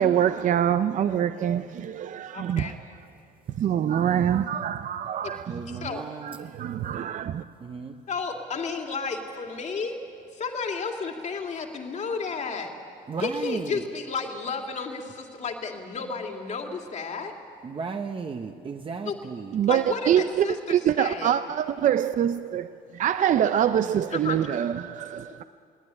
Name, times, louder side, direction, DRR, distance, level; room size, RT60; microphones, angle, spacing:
voice 1, 0.0-2.8 3.6-5.5 6.2-7.4 19.5-25.4, right 9 dB, 50° right, 0.6 m, -25 dB
voice 2, 2.3-2.8 5.2-5.3 5.7-6.0 8.1-10.0 10.3-12.7 13.2-17.3 19.0-19.2 19.7-21.4 24.1-24.4, left 5 dB, 45° left, 2.7 m, -32 dB
voice 3, 5.5-6.5 7.6-7.9 13.1-13.7 17.6-19.6, right 5 dB, 30° right, 1.1 m, -35 dB
22.0 x 16.5 x 10.0 m
cardioid pair, 110°, 17 cm